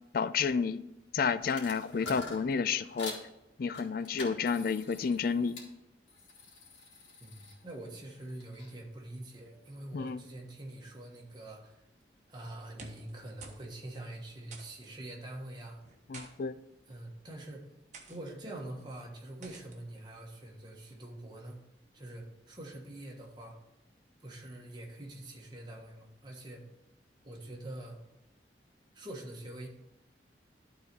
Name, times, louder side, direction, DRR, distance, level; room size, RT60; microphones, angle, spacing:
voice 1, 0.1-0.8 1.1-3.1 3.6-5.6 9.9-10.2 16.1-16.6, left 5 dB, 55° left, 14 dB, 0.4 m, -30 dB
sound 1, 1.4-3.3 3.7-5.7 6.1-8.7, left 2 dB, 85° left, 2.1 m, -46 dB
voice 2, 7.2-11.8 12.3-15.8 16.8-17.7 18.1-21.6 21.9-23.6 24.2-26.6 27.2-28.0 28.9-29.7, right 1 dB, 25° right, -1 dB, 1.4 m, -45 dB
sound 2, 12.8-13.1 13.4-13.7 13.9-14.1 14.5-14.9 15.8-16.3 17.1-17.3 17.9-18.2 19.4-19.8, right 4 dB, 40° right, 1.1 m, -50 dB
12.0 x 4.0 x 4.6 m, 0.91 s
head